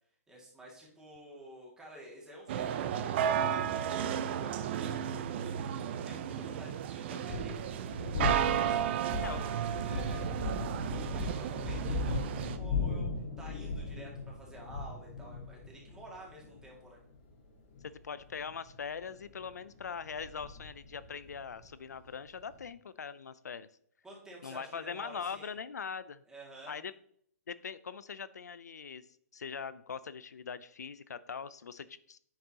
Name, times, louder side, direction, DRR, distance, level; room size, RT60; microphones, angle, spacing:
voice 1, 0.3-7.5 8.2-17.0 24.0-25.6 26.3-26.8, right 1 dB, 5° right, -3 dB, 2.2 m, -51 dB
sound 1, 2.5-12.6, right 9 dB, 40° right, 0.6 m, -33 dB
sound 2, 7.1-22.7, left 3 dB, 40° left, 2.3 m, -38 dB
voice 2, 17.8-23.7 24.4-26.2 26.7-26.9 27.5-29.1 29.3-32.2, left 6 dB, 85° left, 16 dB, 0.6 m, -41 dB
9.2 x 6.6 x 2.9 m, 0.65 s
hypercardioid pair, 150°, 9 cm